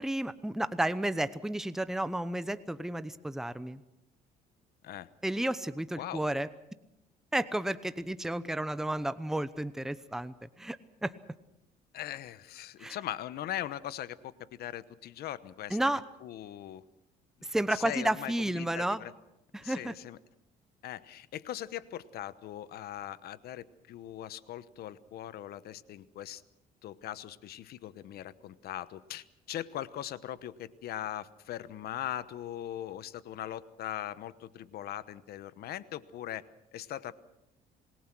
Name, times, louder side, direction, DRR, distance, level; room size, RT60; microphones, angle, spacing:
voice 1, 0.0-3.8 5.2-6.5 7.3-10.8 11.0-11.2 12.8-13.0 15.7-16.0 17.4-19.0 19.5-19.9, right 1 dB, 5° right, 13 dB, 0.9 m, -32 dB
voice 2, 11.9-14.3 14.6-15.8 16.2-16.8 17.7-19.1 19.6-20.2 20.8-26.4 26.8-36.4 36.7-37.1, left 12 dB, 70° left, 16 dB, 1.1 m, -40 dB
26.5 x 20.0 x 6.1 m, 0.87 s
cardioid pair, 110°, 17 cm